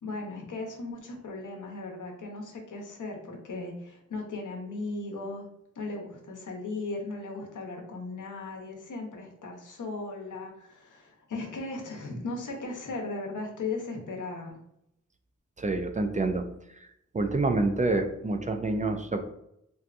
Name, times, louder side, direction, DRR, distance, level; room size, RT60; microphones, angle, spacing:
voice 1, 0.0-5.5 5.7-14.6, left 3 dB, 85° left, 1 dB, 0.8 m, -37 dB
voice 2, 15.6-16.4 17.1-19.2, right 2 dB, 25° right, 5 dB, 0.3 m, -27 dB
3.3 x 2.7 x 2.5 m, 0.79 s
wide cardioid pair, 70°, 30 cm